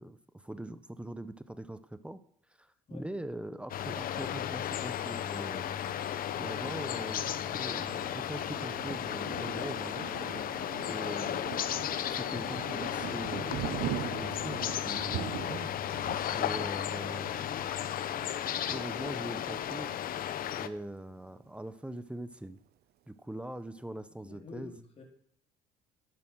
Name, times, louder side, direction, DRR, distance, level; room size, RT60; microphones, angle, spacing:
voice 1, 0.0-2.2 2.6-5.8 6.3-10.1 10.8-11.6 12.0-15.7 16.3-17.7 18.3-22.6 23.1-24.7, right 1 dB, 5° right, 13 dB, 0.9 m, -42 dB
sound 1, 3.7-20.7, left 10 dB, 60° left, 0.9 m, -34 dB
Thunder, 5.8-20.1 20.6-20.8 21.1-21.7, right 13 dB, 65° right, 0.6 m, -43 dB
voice 2, 24.2-25.0, left 2 dB, 35° left, -1 dB, 3.8 m, -48 dB
12.5 x 11.0 x 6.3 m, 0.64 s
cardioid pair, 110°, 17 cm